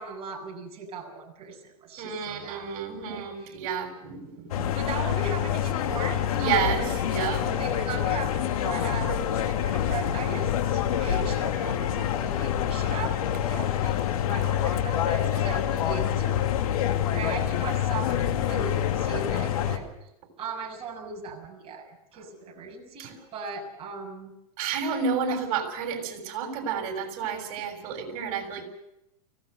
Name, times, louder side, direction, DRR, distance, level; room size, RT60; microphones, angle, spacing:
voice 1, 0.0-2.7 3.0-3.6 4.7-6.9 7.6-14.0 14.2-16.4 16.6-16.8 17.1-20.1 20.4-24.3 25.3-25.4, right 5 dB, 30° right, 0 dB, 6.6 m, -38 dB
voice 2, 2.0-4.7 6.3-7.6 23.0-23.1 24.6-28.7, right 6 dB, 50° right, 4 dB, 6.8 m, -30 dB
sound 1, 4.5-19.8, left 10 dB, 70° left, 2.6 m, -26 dB
24.5 x 17.0 x 6.7 m, 0.82 s
hypercardioid pair, 125°, 19 cm